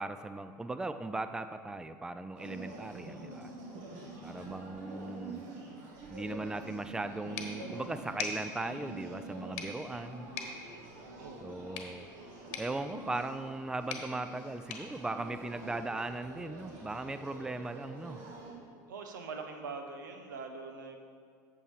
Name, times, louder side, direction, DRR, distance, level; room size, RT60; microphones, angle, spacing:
voice 1, 0.0-3.5 4.2-5.4 6.1-10.3 11.4-12.1 12.6-18.2, right 2 dB, 5° right, 10 dB, 0.4 m, -38 dB
sound 1, 2.4-18.5, right 2 dB, 70° right, 1.9 m, -47 dB
sound 2, 7.4-16.0, left 5 dB, 65° left, 1.2 m, -45 dB
voice 2, 11.2-11.5 18.9-21.0, right 4 dB, 85° right, 5 dB, 0.9 m, -43 dB
8.7 x 6.9 x 4.7 m, 2.1 s
hypercardioid pair, 80°, 10 cm